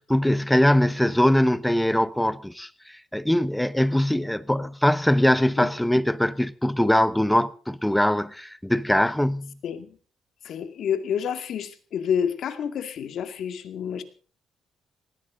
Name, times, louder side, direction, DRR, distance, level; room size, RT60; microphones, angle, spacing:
voice 1, 0.0-9.6, left 1 dB, 5° left, 0.9 m, -22 dB
voice 2, 9.6-10.0 10.4-14.0, left 8 dB, 70° left, 2.2 m, -29 dB
19.5 x 16.5 x 3.9 m
cardioid pair, 90°, 0 cm